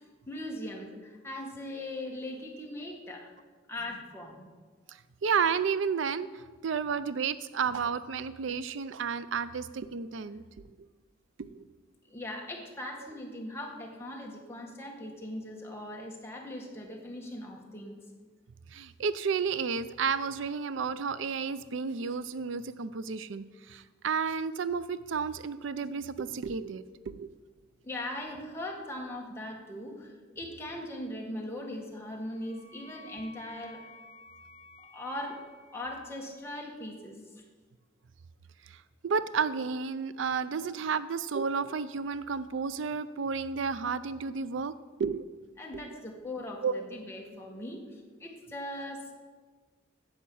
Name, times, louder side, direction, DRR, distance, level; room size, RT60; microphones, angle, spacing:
voice 1, 0.3-3.3 3.7-4.5 12.1-18.0 27.8-33.8 34.8-35.4 35.7-37.4 40.6-40.7 45.6-49.1, left 1 dB, 15° left, -1 dB, 1.8 m, -40 dB
voice 2, 4.9-10.4 11.4-11.7 18.7-27.3 38.7-44.7 45.0-45.3 45.9-46.0 46.6-46.7, right 5 dB, 70° right, 14 dB, 0.4 m, -32 dB
Wind instrument woodwind instrument, 31.7-36.5, left 3 dB, 35° left, 0.9 m, -54 dB
10.0 x 7.3 x 8.5 m, 1.4 s
head